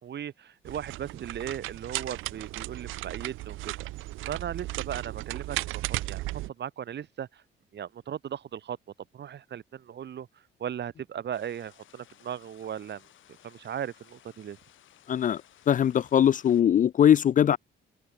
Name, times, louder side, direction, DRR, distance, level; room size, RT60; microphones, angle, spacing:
voice 1, 0.0-3.9 4.3-6.3 6.6-7.4 7.7-8.8 9.1-10.3 10.6-13.0 13.4-14.6, right 9 dB, 60° right, 3.9 m, -37 dB
sound 1, 0.7-6.5, right 18 dB, 90° right, 0.6 m, -35 dB
sound 2, 11.3-16.6, left 12 dB, 75° left, 4.1 m, -58 dB
voice 2, 15.1-15.4 15.7-17.6, left 9 dB, 40° left, 0.4 m, -21 dB
cardioid pair, 90°, 20 cm